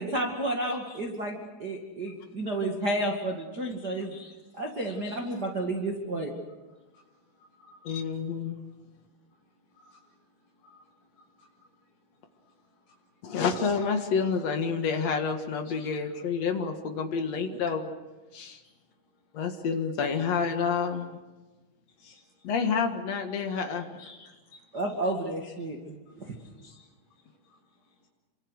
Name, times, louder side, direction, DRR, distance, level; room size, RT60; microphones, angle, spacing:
voice 1, 0.0-4.1 4.6-6.3 24.7-26.3, right 1 dB, 45° right, 2 dB, 1.3 m, -31 dB
voice 2, 0.7-1.0 2.1-2.5 3.8-5.2 6.8-8.2 8.8-13.4 15.6-16.0 18.6-19.3 21.9-22.7 24.0-25.1 25.6-25.8 26.1-28.1, left 3 dB, 35° left, -2 dB, 8.1 m, -58 dB
voice 3, 7.8-8.6 13.2-17.9 18.3-18.6 19.3-21.1 22.4-24.0, left 5 dB, 60° left, 5 dB, 1.8 m, -29 dB
28.5 x 25.5 x 6.5 m, 1.2 s
omnidirectional pair, 5.6 m